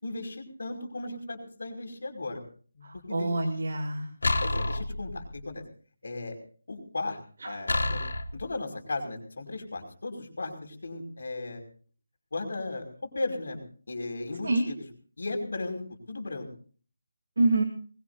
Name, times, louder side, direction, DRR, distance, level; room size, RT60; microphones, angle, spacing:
voice 1, 0.0-2.4 2.8-3.3 4.4-5.6 6.0-6.4 6.7-7.2 7.4-8.0 8.3-11.6 12.3-12.9 13.1-13.6 13.9-14.8 15.2-15.8 16.1-16.5, left 2 dB, 50° left, 3 dB, 5.3 m, -36 dB
voice 2, 2.8-4.1 7.4-7.6 14.4-14.6 17.4-17.6, right 2 dB, 50° right, 3 dB, 2.6 m, -27 dB
sound 1, 4.2-5.4 7.7-8.5, left 2 dB, 90° left, 3.6 m, -28 dB
23.0 x 21.0 x 2.7 m, 0.43 s
figure-of-eight pair, 180°, 0 cm